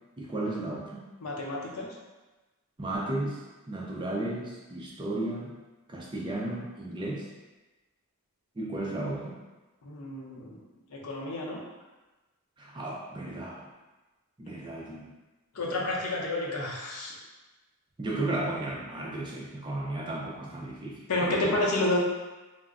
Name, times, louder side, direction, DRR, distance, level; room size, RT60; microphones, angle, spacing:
voice 1, 0.2-1.0 2.8-3.4 3.7-5.5 5.9-7.3 8.6-9.3 12.6-13.6 14.4-15.1 18.0-21.5, right 2 dB, 20° right, -3 dB, 0.4 m, -34 dB
voice 2, 1.2-1.9 9.8-10.5 10.9-11.6 15.5-17.1 21.1-22.0, left 2 dB, 80° left, -2 dB, 0.6 m, -30 dB
2.3 x 2.0 x 3.5 m, 1.2 s
head